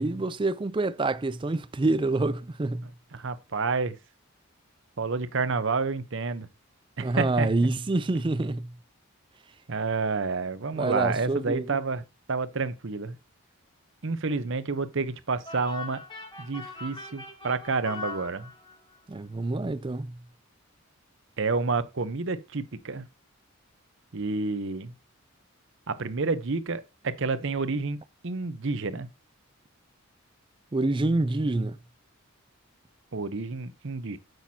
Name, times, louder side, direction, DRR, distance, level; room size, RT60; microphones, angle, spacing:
voice 1, 0.0-2.9 7.0-8.7 10.8-11.8 19.1-20.2 30.7-31.8, right 2 dB, 20° right, 0.4 m, -27 dB
voice 2, 3.1-4.0 5.0-6.5 7.0-7.7 9.7-12.0 12.3-13.2 14.0-16.0 16.4-18.5 21.4-23.0 24.1-24.9 25.9-28.0 28.2-29.1 33.1-34.2, right 4 dB, 55° right, 0.8 m, -29 dB
sound 1, 15.4-19.0, left 3 dB, 20° left, 2.6 m, -41 dB
8.5 x 7.9 x 2.8 m
head